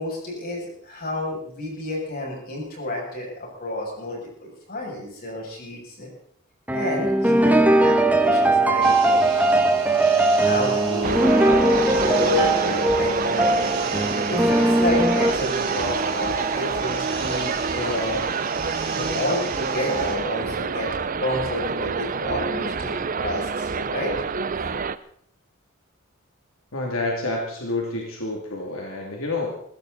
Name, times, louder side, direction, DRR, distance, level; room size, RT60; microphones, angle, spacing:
voice 1, 0.0-6.1 6.7-9.2 10.4-13.8 14.2-18.3 18.9-20.9 21.2-24.1, left 1 dB, 45° left, -1 dB, 7.3 m, -30 dB
sound 1, 6.7-15.3, right 2 dB, 10° right, 1.4 m, -20 dB
sound 2, 8.8-20.2, right 5 dB, 25° right, 5.9 m, -33 dB
sound 3, 11.0-25.0, right 5 dB, 40° right, 0.7 m, -27 dB
voice 2, 26.7-29.5, left 2 dB, 80° left, 0 dB, 2.8 m, -28 dB
21.5 x 16.0 x 4.1 m, 0.65 s
head